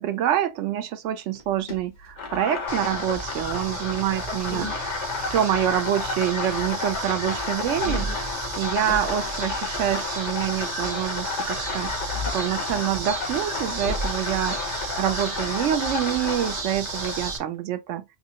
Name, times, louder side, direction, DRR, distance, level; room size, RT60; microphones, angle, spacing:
voice 1, 0.0-18.0, right 11 dB, 80° right, 0.9 m, -27 dB
sound 1, 1.3-2.7 4.0-5.5 7.7-10.3 11.8-12.6 13.8-16.1, equal, 40° left, 1.0 m, -35 dB
sound 2, 2.2-17.4, left 4 dB, 70° left, 1.3 m, -31 dB
sound 3, 2.7-17.4, right 5 dB, 45° right, 0.7 m, -35 dB
4.1 x 2.6 x 2.7 m
omnidirectional pair, 1.2 m